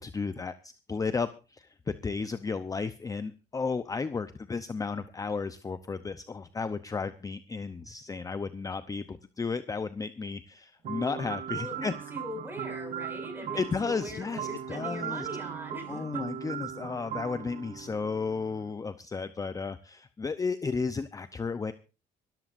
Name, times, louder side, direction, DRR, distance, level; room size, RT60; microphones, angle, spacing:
voice 1, 0.0-11.9 13.5-15.3 15.9-21.7, left 4 dB, 20° left, 12 dB, 0.7 m, -33 dB
sound 1, 10.8-18.7, right 9 dB, 55° right, 1.4 m, -38 dB
voice 2, 11.5-16.3, equal, 10° right, 3 dB, 7.0 m, -41 dB
24.5 x 13.5 x 2.6 m, 0.32 s
cardioid pair, 110°, 17 cm